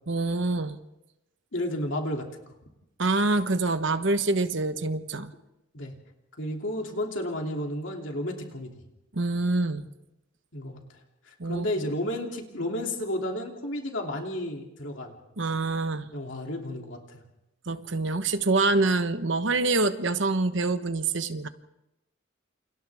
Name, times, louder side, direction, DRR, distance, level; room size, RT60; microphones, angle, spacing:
voice 1, 0.1-0.8 3.0-5.3 9.1-9.9 11.4-11.7 15.4-16.1 17.7-21.5, right 3 dB, 65° right, 10 dB, 1.1 m, -26 dB
voice 2, 1.5-2.2 5.7-5.9 6.4-8.7 10.5-10.8 11.3-15.1 16.1-17.2, left 1 dB, 65° left, 1 dB, 2.9 m, -32 dB
28.5 x 28.0 x 3.6 m, 0.92 s
head